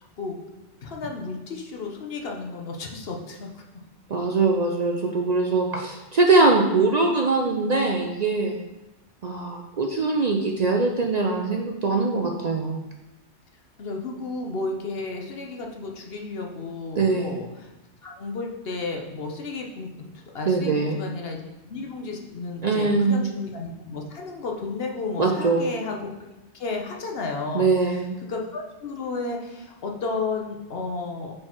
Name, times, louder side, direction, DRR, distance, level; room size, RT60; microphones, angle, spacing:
voice 1, 0.8-3.6 13.8-17.7 18.0-20.1 20.3-21.4 21.7-26.3 26.5-27.7 28.3-31.3, left 3 dB, 60° left, 1 dB, 1.0 m, -32 dB
voice 2, 4.1-8.6 9.2-12.8 17.0-17.3 20.5-21.0 22.6-23.3 25.2-25.7 27.5-28.1, right 3 dB, 55° right, 2 dB, 0.5 m, -22 dB
6.2 x 4.4 x 4.4 m, 1.0 s
omnidirectional pair, 1.2 m